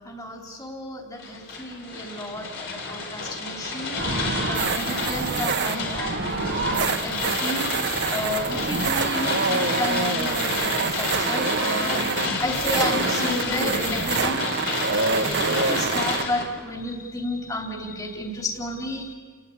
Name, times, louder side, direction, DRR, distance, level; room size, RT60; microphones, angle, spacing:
voice 1, 0.0-7.7 8.1-14.5 14.8-19.1, left 1 dB, 15° left, 1 dB, 3.2 m, -32 dB
sound 1, 1.2-16.4, left 3 dB, 55° left, 4.2 m, -30 dB
sound 2, 4.0-16.2, right 4 dB, 50° right, 1.5 m, -26 dB
29.5 x 19.0 x 8.5 m, 1.5 s
head